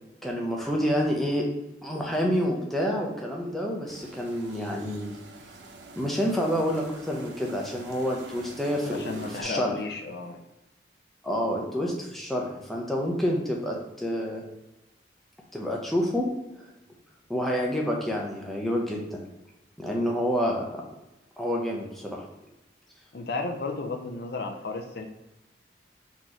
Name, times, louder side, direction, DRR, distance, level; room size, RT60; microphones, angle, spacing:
voice 1, 0.2-1.4 1.8-5.1 6.0-9.7 11.2-14.4 15.5-16.3 16.6-16.7 17.3-19.2 19.8-20.8 21.4-22.2, equal, ahead, -2 dB, 0.6 m, -28 dB
Boat Passing By The Dock, 3.9-9.4, right 2 dB, 80° right, 0.6 m, -46 dB
voice 2, 8.8-10.4 23.1-25.1, left 3 dB, 60° left, 4 dB, 0.5 m, -33 dB
3.9 x 3.1 x 3.8 m, 0.98 s
head